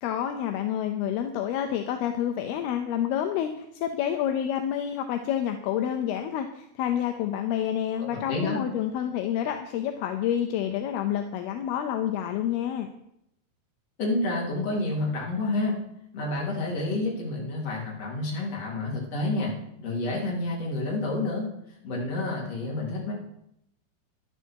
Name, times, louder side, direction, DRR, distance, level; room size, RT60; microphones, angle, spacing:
voice 1, 0.0-12.9, left 10 dB, 80° left, 6 dB, 2.7 m, -28 dB
voice 2, 8.3-8.6 14.0-15.8 16.1-19.5 19.8-21.5 21.8-23.1, left 2 dB, 40° left, -3 dB, 4.2 m, -29 dB
13.5 x 11.0 x 4.6 m, 0.77 s
omnidirectional pair, 4.6 m